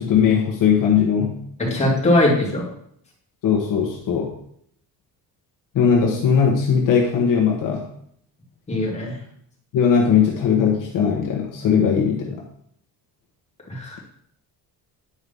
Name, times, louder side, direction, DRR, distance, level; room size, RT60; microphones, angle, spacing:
voice 1, 0.0-1.4 3.4-4.3 5.7-7.9 9.7-12.4, left 7 dB, 55° left, 1 dB, 1.3 m, -19 dB
voice 2, 1.6-2.6 8.7-9.2 13.7-14.0, left 1 dB, 15° left, -4 dB, 2.6 m, -20 dB
9.9 x 4.8 x 5.5 m, 0.68 s
cardioid pair, 175°, 38 cm